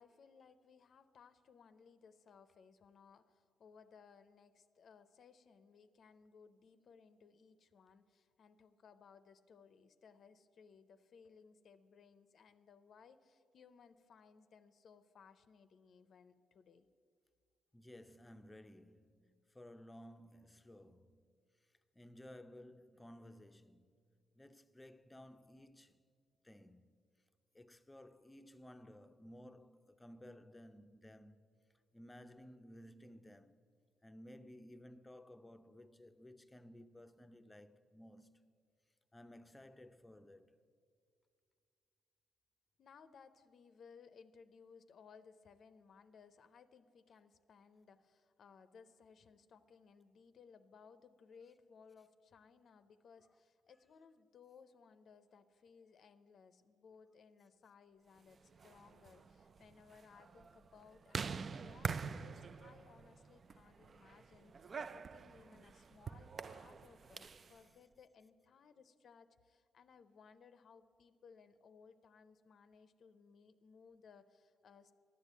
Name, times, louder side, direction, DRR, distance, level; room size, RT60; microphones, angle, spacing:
voice 1, 0.0-16.9 42.8-74.9, left 6 dB, 55° left, 0.5 m, -62 dB
voice 2, 17.7-21.4 21.9-26.0 26.4-26.9 27.5-31.5 31.9-33.6 34.0-38.5 39.1-40.6, left 1 dB, 15° left, 0.5 m, -57 dB
sound 1, 58.4-67.5, right 5 dB, 40° right, 0.3 m, -46 dB
11.5 x 8.2 x 8.1 m
cardioid pair, 90°, 0 cm